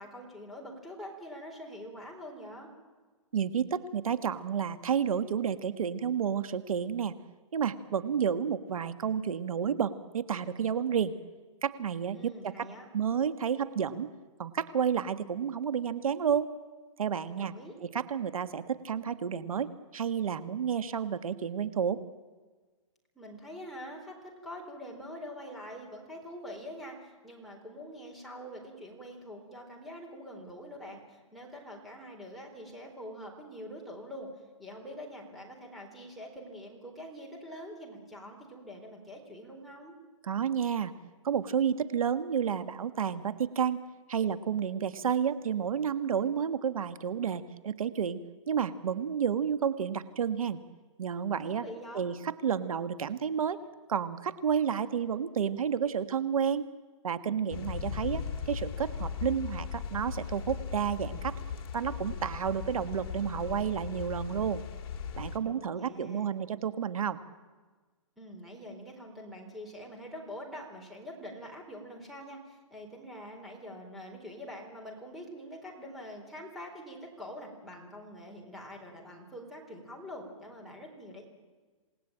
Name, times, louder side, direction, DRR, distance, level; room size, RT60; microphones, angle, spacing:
voice 1, 0.0-2.7 12.1-12.9 17.3-17.8 23.1-34.3 34.6-39.9 51.4-52.1 65.4-66.3 68.2-81.2, equal, ahead, -1 dB, 4.2 m, -45 dB
voice 2, 3.3-7.1 7.5-11.1 11.6-12.7 12.9-14.1 14.4-16.5 17.0-17.5 17.9-22.0 40.2-40.9 41.2-43.8 44.1-48.2 48.5-50.6 51.0-51.6 51.9-53.6 53.9-56.6 57.0-61.4 61.7-64.6 65.2-67.2, right 7 dB, 90° right, 12 dB, 1.5 m, -31 dB
sound 1, 57.5-65.4, left 7 dB, 45° left, 2.8 m, -38 dB
27.5 x 19.0 x 9.0 m, 1.4 s
hypercardioid pair, 160°, 17 cm